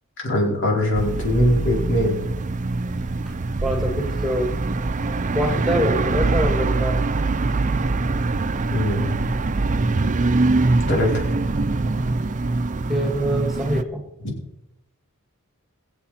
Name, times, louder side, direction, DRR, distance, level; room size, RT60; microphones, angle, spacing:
voice 1, 0.2-2.2 8.7-9.2 10.9-11.2, left 1 dB, 55° left, -2 dB, 4.4 m, -21 dB
sound 1, 0.9-13.8, right 3 dB, 35° right, 0.5 m, -23 dB
voice 2, 3.6-4.5 5.3-7.0 12.9-14.0, equal, ahead, 2 dB, 1.7 m, -24 dB
22.0 x 7.8 x 4.3 m, 0.84 s
head